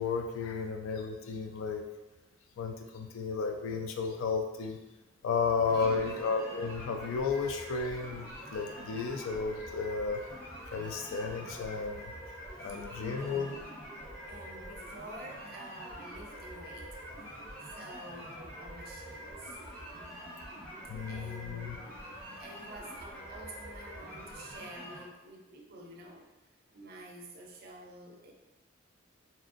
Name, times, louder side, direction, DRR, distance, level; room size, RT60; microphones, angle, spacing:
voice 1, 0.0-1.8 2.6-4.8 5.2-10.2 10.7-12.1 12.6-13.6 20.9-21.8, left 5 dB, 85° left, 5 dB, 0.3 m, -33 dB
sound 1, 5.6-25.0, equal, 10° left, 1.1 m, -45 dB
voice 2, 5.7-6.1 12.6-13.8 14.3-17.0 17.7-19.6 19.9-20.6 21.1-21.8 22.4-26.3 26.7-28.3, right 1 dB, 50° right, 1 dB, 0.4 m, -49 dB
2.7 x 2.5 x 2.4 m, 1.1 s
head